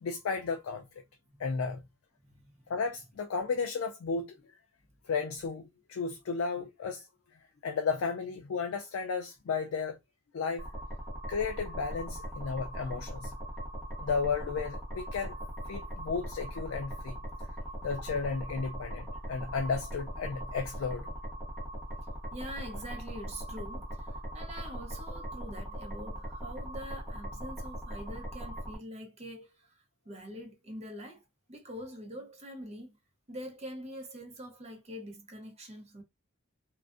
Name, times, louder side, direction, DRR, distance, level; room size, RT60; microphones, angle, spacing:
voice 1, 0.0-0.8 1.4-1.8 2.7-4.4 5.1-7.1 7.6-10.0 10.3-10.7 11.3-13.3 14.0-15.3 15.7-17.2 17.8-21.1, left 5 dB, 70° left, 0.3 m, -33 dB
sound 1, 10.6-28.8, equal, 5° left, 1.0 m, -40 dB
voice 2, 22.3-32.9 33.3-36.0, equal, 30° right, 0.8 m, -44 dB
2.4 x 2.2 x 2.4 m
head